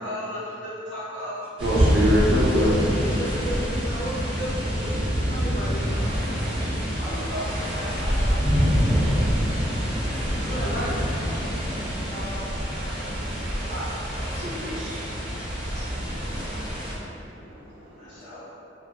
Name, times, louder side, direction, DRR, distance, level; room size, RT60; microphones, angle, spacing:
voice 1, 0.0-1.4 5.8-6.0 7.0-8.7 12.0-13.0 18.0-18.5, left 1 dB, 85° left, -12 dB, 1.2 m, -36 dB
sound 1, 1.6-16.9, equal, 30° right, 0.9 m, -26 dB
voice 2, 1.6-2.9 4.9-5.1 5.4-5.5 6.4-7.2 7.8-8.0 9.2-10.5 14.3-18.5, equal, 85° right, -5 dB, 0.6 m, -29 dB
voice 3, 2.9-5.8 10.4-11.0 13.7-13.9, equal, 50° left, -8 dB, 0.7 m, -33 dB
2.7 x 2.6 x 2.5 m, 2.7 s
head